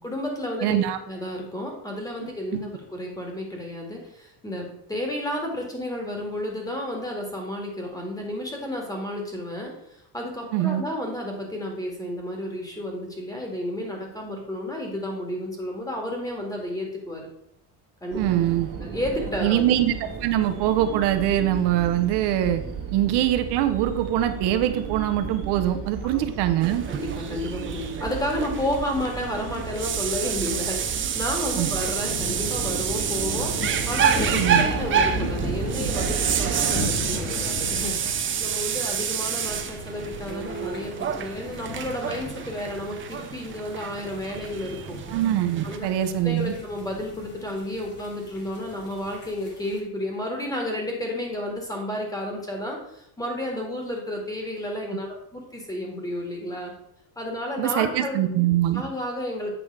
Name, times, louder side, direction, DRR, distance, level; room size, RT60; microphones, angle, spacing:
voice 1, 0.0-0.8 1.1-9.7 10.1-17.3 18.0-18.4 18.8-19.6 26.1-26.3 26.9-38.0 38.4-45.0 45.6-45.9 46.2-56.7 57.2-58.2 58.7-59.5, left 1 dB, 10° left, 1 dB, 1.9 m, -31 dB
voice 2, 0.6-1.0 2.2-2.6 10.5-10.8 18.1-18.7 19.4-19.9 20.2-22.6 22.9-26.8 31.6-31.7 34.3-34.7 45.1-46.5 57.6-58.8, right 12 dB, 70° right, 8 dB, 0.9 m, -23 dB
sound 1, 18.1-36.8, right 6 dB, 50° right, 1.8 m, -34 dB
sound 2, 26.6-45.8, right 8 dB, 30° right, 0.7 m, -29 dB
sound 3, 31.6-49.8, left 1 dB, 25° left, 2.0 m, -36 dB
8.4 x 5.4 x 4.8 m, 0.76 s
cardioid pair, 155°, 42 cm